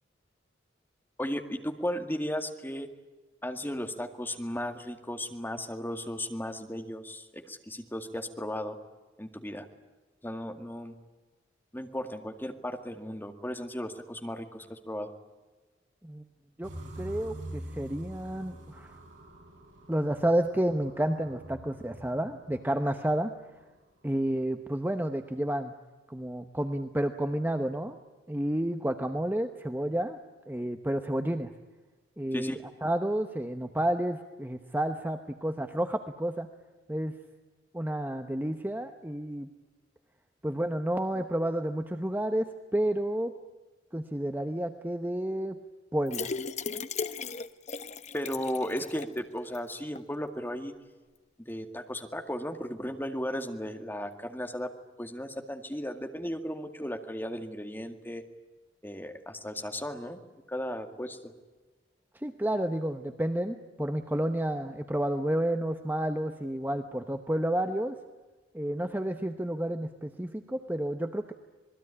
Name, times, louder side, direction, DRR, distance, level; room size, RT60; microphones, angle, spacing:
voice 1, 1.2-2.9 3.4-8.8 9.2-9.7 10.2-10.9 11.7-15.1 32.3-32.6 48.1-50.7 51.4-54.7 55.0-58.2 58.8-60.2 60.5-61.3, equal, 10° left, 6 dB, 2.0 m, -35 dB
sound 1, 16.6-23.7, right 1 dB, 70° right, 7.6 m, -46 dB
voice 2, 17.0-18.9 19.9-23.3 24.0-25.7 26.1-28.0 28.3-30.2 30.5-31.5 32.2-36.5 36.9-37.1 37.7-39.5 40.4-43.3 43.9-45.5 45.9-46.3 62.1-67.9 68.5-71.3, right 1 dB, 10° right, 7 dB, 0.9 m, -30 dB
sound 2, 46.1-49.2 49.5-49.6 50.0-50.1, left 5 dB, 40° left, 1.0 m, -36 dB
27.0 x 20.0 x 9.9 m, 1.2 s
head